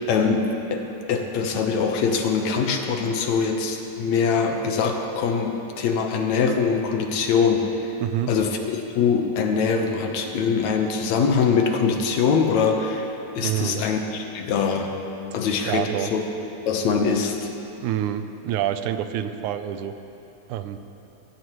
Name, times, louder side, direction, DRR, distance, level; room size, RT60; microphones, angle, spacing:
voice 1, 0.1-7.7 8.3-8.6 8.9-14.9 15.3-16.2 16.7-17.5, left 5 dB, 70° left, 3 dB, 2.3 m, -23 dB
voice 2, 8.0-8.3 13.4-13.8 15.7-16.1 17.8-20.0 20.5-20.8, right 11 dB, 90° right, 9 dB, 2.1 m, -27 dB
22.5 x 16.5 x 3.1 m, 2.9 s
omnidirectional pair, 3.4 m